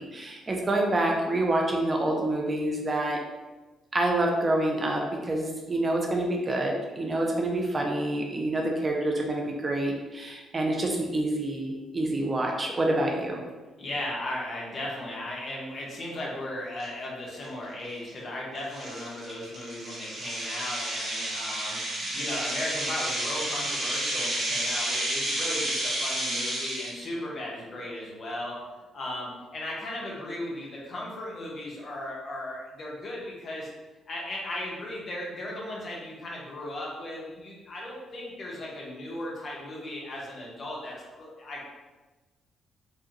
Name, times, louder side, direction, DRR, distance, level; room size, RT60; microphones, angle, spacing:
voice 1, 0.0-3.2 3.9-13.5, right 1 dB, 30° right, 0 dB, 0.6 m, -27 dB
voice 2, 13.8-28.6 28.9-33.7 34.1-41.6, left 1 dB, 45° left, -4 dB, 1.2 m, -36 dB
sound 1, 16.8-16.9 17.4-17.6 18.1-18.2 18.7-27.0, right 1 dB, 55° right, 1.4 m, -31 dB
4.7 x 2.4 x 3.0 m, 1.2 s
cardioid pair, 90°, 0 cm